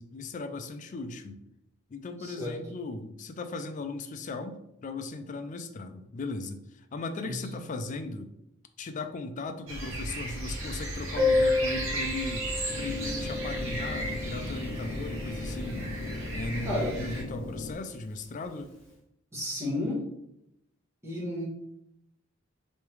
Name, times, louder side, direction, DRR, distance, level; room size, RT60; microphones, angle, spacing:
voice 1, 0.0-1.4 1.9-8.3 8.8-12.5 12.8-15.8 16.3-18.7, left 3 dB, 35° left, 8 dB, 0.4 m, -37 dB
voice 2, 2.2-2.5 7.2-7.4 16.6-16.9 19.3-20.0 21.0-21.5, left 1 dB, 15° right, -5 dB, 1.2 m, -32 dB
sound 1, 9.7-17.2, right 1 dB, 65° right, 0.9 m, -36 dB
Piano, 11.2-16.5 16.8-16.9 17.1-17.2 17.6-17.7 18.4-18.6, left 3 dB, 5° left, 1.2 m, -31 dB
sound 2, 12.7-17.7, left 2 dB, 90° left, 0.5 m, -38 dB
3.4 x 3.2 x 3.2 m, 0.81 s
head